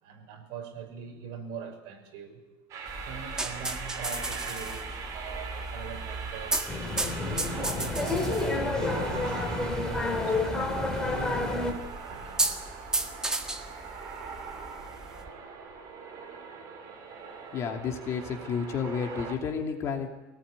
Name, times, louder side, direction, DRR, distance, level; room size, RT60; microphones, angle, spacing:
voice 1, 0.0-2.4 3.1-6.7 7.2-12.6, right 6 dB, 60° right, 3 dB, 6.3 m, -42 dB
sound 1, 2.7-19.3, right 5 dB, 40° right, 5.2 m, -41 dB
sound 2, 2.9-15.3, right 2 dB, 10° right, 1.7 m, -35 dB
sound 3, 6.7-11.7, left 2 dB, 10° left, 3.3 m, -29 dB
voice 2, 17.5-20.1, left 6 dB, 35° left, 3 dB, 2.9 m, -31 dB
24.0 x 19.0 x 9.7 m, 1.1 s
cardioid pair, 165°, 9 cm